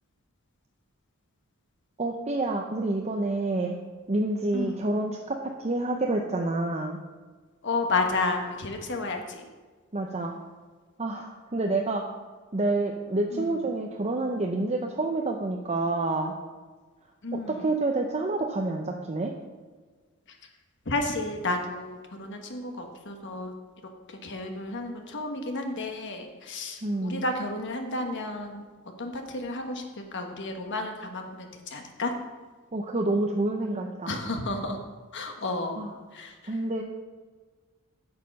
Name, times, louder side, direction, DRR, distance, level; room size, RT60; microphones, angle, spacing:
voice 1, 2.0-3.7 4.1-7.0 9.9-10.4 11.0-12.0 12.5-16.3 17.3-19.3 26.8-27.2 32.7-34.2 35.8-35.9 36.5-36.8, right 2 dB, 30° right, 2 dB, 0.7 m, -28 dB
voice 2, 4.5-4.8 7.6-9.4 13.3-13.6 17.2-17.6 20.8-23.5 24.1-28.7 29.0-29.8 30.1-32.1 34.1-34.8 35.1-36.5, left 2 dB, 55° left, 4 dB, 1.3 m, -32 dB
9.7 x 6.7 x 5.3 m, 1.4 s
head